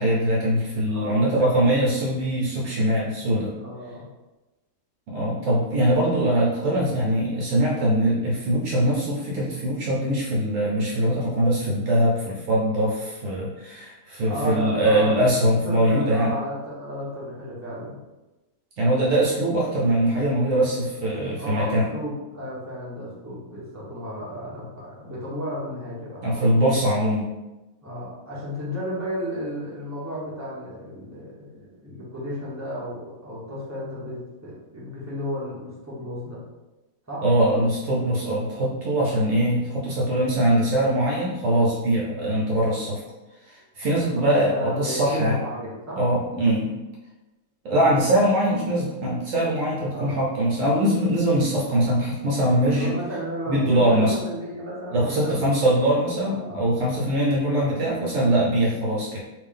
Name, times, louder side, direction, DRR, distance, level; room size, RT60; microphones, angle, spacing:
voice 1, 0.0-3.5 5.1-16.3 18.8-21.9 26.2-27.3 37.2-43.0 43.5-45.4 46.0-46.7 47.6-53.0 53.5-54.1 54.9-59.2, right 1 dB, 65° right, -4 dB, 1.0 m, -22 dB
voice 2, 0.9-1.5 3.6-4.1 14.3-18.0 21.4-26.5 27.8-36.4 37.1-37.2 44.0-44.1 44.4-46.0 47.7-48.0 49.8-50.2 52.7-55.5 56.2-56.6, equal, 10° right, -8 dB, 1.1 m, -33 dB
3.4 x 2.8 x 3.6 m, 1.1 s
omnidirectional pair, 1.6 m